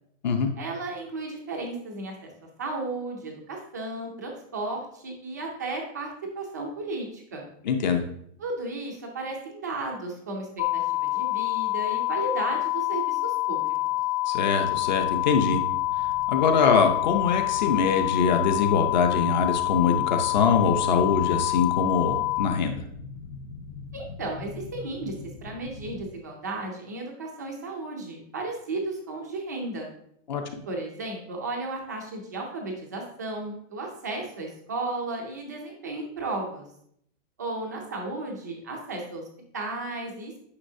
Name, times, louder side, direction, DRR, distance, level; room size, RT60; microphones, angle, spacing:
voice 1, 0.6-2.3 2.6-7.5 8.4-14.0 23.9-25.1 25.4-29.9 30.7-36.6 37.4-39.2 39.5-40.3, right 2 dB, 15° right, 0 dB, 0.4 m, -34 dB
voice 2, 7.6-8.0 14.3-15.6 16.3-22.8 30.3-30.4, left 5 dB, 35° left, 6 dB, 0.6 m, -23 dB
sound 1, 10.6-22.5, left 18 dB, 75° left, 0.7 m, -27 dB
sound 2, 14.8-26.0, left 3 dB, 90° left, 1.1 m, -43 dB
9.7 x 6.0 x 2.7 m, 0.70 s
supercardioid pair, 175°, 38 cm